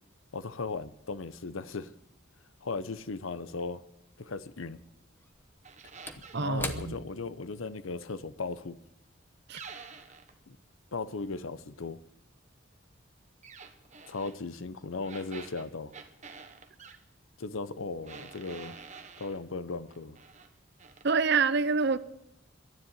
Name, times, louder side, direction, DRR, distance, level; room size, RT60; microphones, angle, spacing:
voice 1, 0.3-1.9 2.6-3.8 4.2-4.8 6.2-8.8 10.5-10.6 10.9-12.0 14.1-15.9 17.4-18.8 19.2-20.2, left 3 dB, 85° left, 0.8 m, -37 dB
Slam / Wood, 3.6-3.7 5.2-9.9 10.2-10.3, left 2 dB, 10° left, 0.9 m, -44 dB
sound 1, 5.6-6.5 9.5-10.3 13.4-14.4 15.0-17.0 18.0-19.4 19.9-20.5 20.8-21.1, right 5 dB, 35° right, 1.2 m, -48 dB
voice 2, 6.3-7.0 9.5-9.6 21.0-22.0, right 5 dB, 55° right, 0.7 m, -26 dB
12.5 x 10.0 x 9.3 m
head